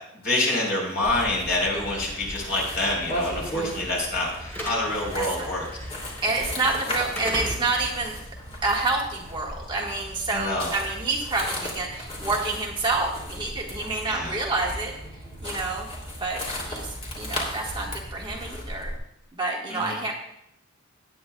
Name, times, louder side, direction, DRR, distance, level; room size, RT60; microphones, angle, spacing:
voice 1, 0.2-5.7 10.3-10.7 14.1-14.4 19.7-20.0, left 2 dB, 50° left, -1 dB, 3.8 m, -27 dB
sound 1, 1.0-19.0, equal, 30° left, 2.5 m, -36 dB
Slam / Alarm, 1.8-9.9, equal, 10° left, 2.0 m, -39 dB
voice 2, 5.2-5.5 6.2-8.2 8.6-14.9 15.4-15.9 16.2-16.9 17.2-18.9 19.4-20.1, right 3 dB, 20° right, -2 dB, 1.3 m, -28 dB
18.0 x 8.8 x 2.3 m, 0.78 s
head